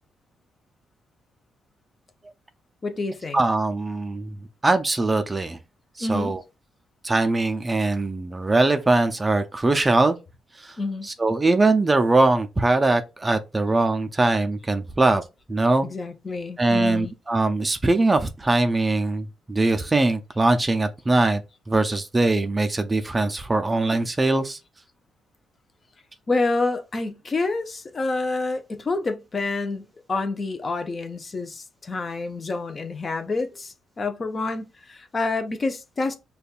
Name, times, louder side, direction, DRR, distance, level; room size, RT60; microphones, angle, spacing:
voice 1, 2.8-3.4 6.0-6.3 10.8-11.1 15.8-17.1 26.3-36.2, left 3 dB, 35° left, 0.6 m, -28 dB
voice 2, 3.3-4.4 4.6-5.6 6.0-6.4 7.0-10.2 10.6-10.8 11.2-15.2 15.5-15.9 16.6-21.4 21.7-24.6, right 2 dB, 20° right, 0.4 m, -21 dB
5.1 x 2.2 x 2.4 m
cardioid pair, 90°, 0 cm